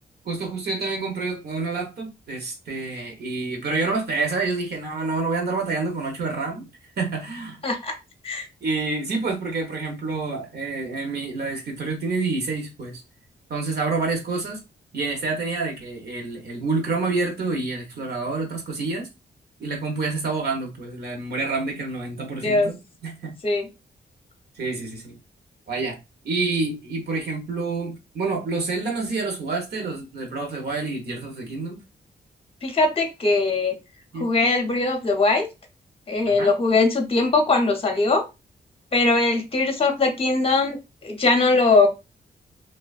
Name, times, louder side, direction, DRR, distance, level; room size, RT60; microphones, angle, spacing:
voice 1, 0.2-6.7 7.0-7.6 8.6-13.0 13.5-14.6 14.9-19.1 19.6-22.8 23.0-23.4 24.5-25.2 25.7-26.0 26.2-31.8 34.1-34.3 36.3-36.5, right 3 dB, 60° right, 0.7 m, -28 dB
voice 2, 7.6-7.9 8.2-8.5 22.4-22.7 23.4-23.7 32.6-33.7 34.2-35.5 36.1-38.2 38.9-40.8 41.0-41.9, left 3 dB, 30° left, 0.6 m, -20 dB
2.6 x 2.2 x 2.3 m
wide cardioid pair, 110°, 18 cm